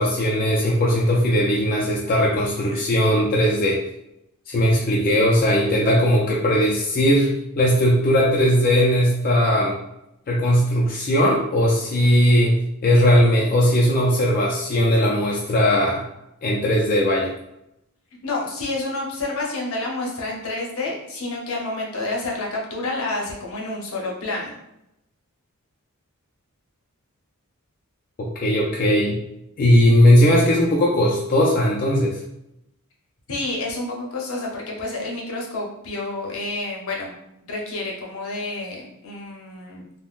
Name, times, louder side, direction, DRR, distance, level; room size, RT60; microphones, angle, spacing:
voice 1, 0.0-3.8 4.5-9.8 10.3-16.0 16.4-17.3 28.2-29.2 29.6-32.2, equal, 40° left, -4 dB, 0.4 m, -18 dB
voice 2, 18.2-24.6 33.3-37.1 37.4-39.8, left 2 dB, 65° left, -2 dB, 0.7 m, -29 dB
3.5 x 2.1 x 2.4 m, 0.84 s
head